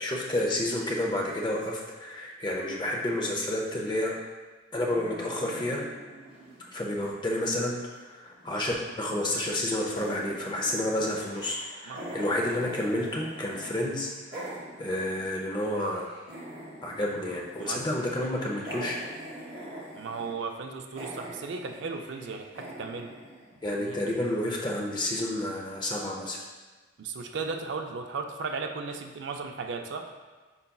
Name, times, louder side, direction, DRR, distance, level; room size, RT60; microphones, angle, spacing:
voice 1, 0.0-4.2 4.7-5.8 6.7-14.5 14.8-16.1 16.8-19.0 23.6-26.4, left 1 dB, 25° left, -1 dB, 0.5 m, -30 dB
sound 1, 4.9-7.9 8.2-9.5 9.8-13.7 14.0-24.1, right 1 dB, 30° right, 0.8 m, -44 dB
voice 2, 11.9-12.2 17.6-17.8 20.0-23.1 23.8-24.0 27.0-30.1, right 4 dB, 70° right, 4 dB, 0.4 m, -36 dB
5.6 x 3.9 x 2.3 m, 1.3 s
head